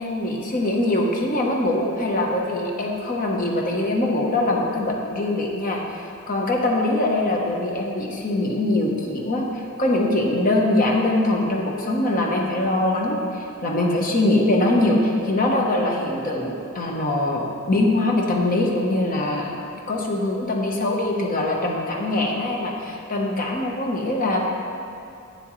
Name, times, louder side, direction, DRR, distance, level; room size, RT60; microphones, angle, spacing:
voice 1, 0.0-19.5 19.9-24.4, left 1 dB, 40° left, -1 dB, 0.9 m, -23 dB
8.5 x 7.4 x 3.1 m, 2.6 s
head